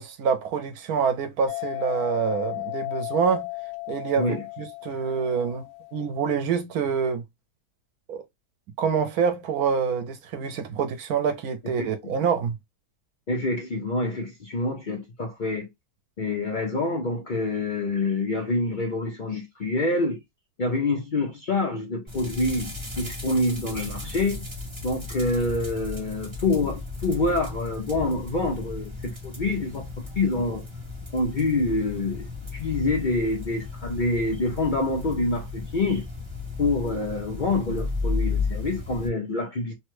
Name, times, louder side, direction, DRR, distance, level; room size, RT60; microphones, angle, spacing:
voice 1, 0.0-3.5 3.9-7.2 8.1-8.2 8.8-12.5, right 6 dB, 80° right, 1.2 m, -26 dB
sound 1, 1.5-6.2, left 26 dB, 80° left, 1.2 m, -35 dB
voice 2, 13.3-15.7 16.2-20.2 20.6-24.4 24.8-29.9 30.2-30.6 31.1-32.3 32.5-36.1 36.6-39.7, left 2 dB, 45° left, 0.6 m, -26 dB
sound 2, 22.1-39.1, left 3 dB, 20° right, 1.2 m, -34 dB
3.2 x 2.2 x 3.1 m
omnidirectional pair, 1.6 m